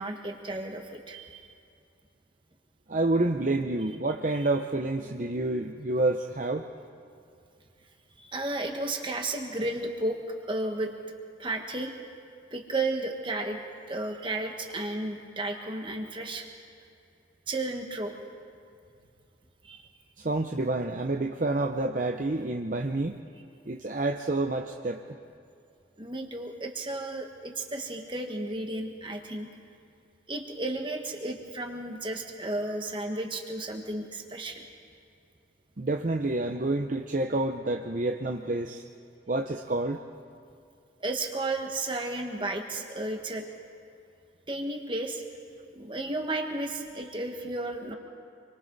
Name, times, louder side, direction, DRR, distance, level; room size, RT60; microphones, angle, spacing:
voice 1, 0.0-1.4 8.2-10.2 10.5-10.9 11.4-11.9 12.5-13.6 13.9-16.5 17.5-18.1 19.6-19.9 26.0-29.5 30.3-34.6 41.0-43.4 44.5-45.2 45.7-47.9, right 2 dB, 25° right, 3 dB, 1.6 m, -33 dB
voice 2, 2.9-6.7 20.2-23.2 23.7-25.2 35.8-38.8 39.3-40.0, right 2 dB, 45° right, 4 dB, 0.7 m, -28 dB
27.5 x 24.0 x 4.1 m, 2.5 s
head